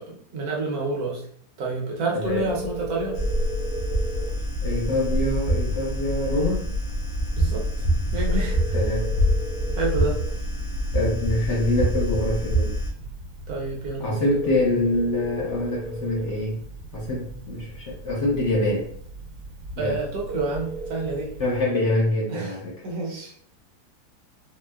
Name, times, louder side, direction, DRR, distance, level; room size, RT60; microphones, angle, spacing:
voice 1, 0.1-1.2 1.6-3.2 7.3-7.6 8.1-8.7 9.8-10.2 13.5-14.3 19.8-21.3 22.3-22.6 22.8-23.3, right 3 dB, 70° right, -2 dB, 1.2 m, -29 dB
voice 2, 2.1-2.4 4.6-6.7 8.7-9.2 10.9-12.8 14.0-16.6 16.9-18.9 19.8-20.0 21.4-22.7, left 1 dB, 60° left, -4 dB, 0.8 m, -25 dB
Telephone, 2.2-21.6, right 2 dB, 90° right, 1.3 m, -37 dB
sound 1, 3.1-12.9, equal, 80° left, 1.3 m, -25 dB
4.3 x 2.0 x 2.2 m, 0.64 s
omnidirectional pair, 1.7 m